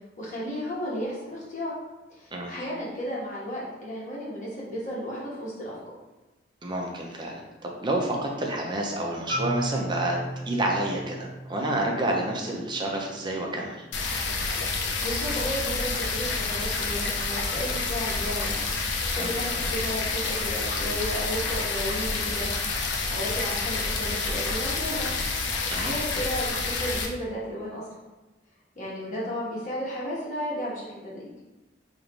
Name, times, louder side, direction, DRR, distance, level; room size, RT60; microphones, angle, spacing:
voice 1, 0.2-1.7 2.1-5.8 15.0-18.6 19.1-22.5 23.1-25.1 25.7-27.9 28.7-31.3, equal, 45° left, -6 dB, 1.2 m, -33 dB
voice 2, 6.6-10.2 10.5-13.8 19.2-19.3 25.7-25.9, right 1 dB, 25° right, 0 dB, 0.6 m, -29 dB
Marimba xylophone, 9.3-13.5, equal, 25° left, 1.1 m, -36 dB
sound 1, 13.9-27.1, left 3 dB, 90° left, 0.6 m, -28 dB
3.2 x 2.5 x 4.0 m, 1.1 s
head